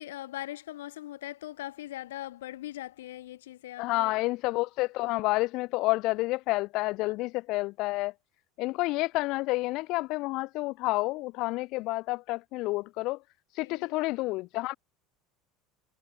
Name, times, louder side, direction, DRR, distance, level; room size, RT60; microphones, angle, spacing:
voice 1, 0.0-4.2 7.0-7.1 13.6-13.9, left 14 dB, 75° left, 1.3 m, -41 dB
voice 2, 3.8-8.1 8.6-13.2 13.5-14.8, left 21 dB, 60° left, 0.3 m, -29 dB
hypercardioid pair, 75°, 0 cm